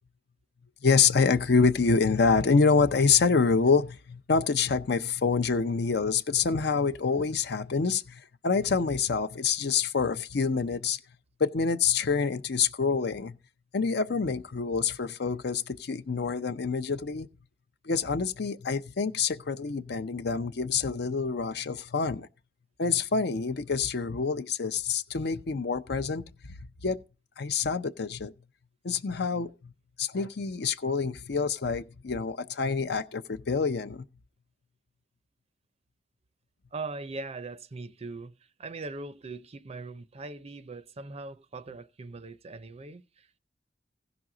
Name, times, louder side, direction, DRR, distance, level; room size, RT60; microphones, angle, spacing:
voice 1, 0.8-11.0 11.4-13.4 13.7-17.3 17.8-22.3 22.8-26.2 26.8-27.0 27.4-28.3 28.8-29.7 30.0-34.0, left 5 dB, 65° left, 0.6 m, -26 dB
voice 2, 36.7-43.4, right 3 dB, 35° right, 0.5 m, -40 dB
16.0 x 6.0 x 3.8 m
head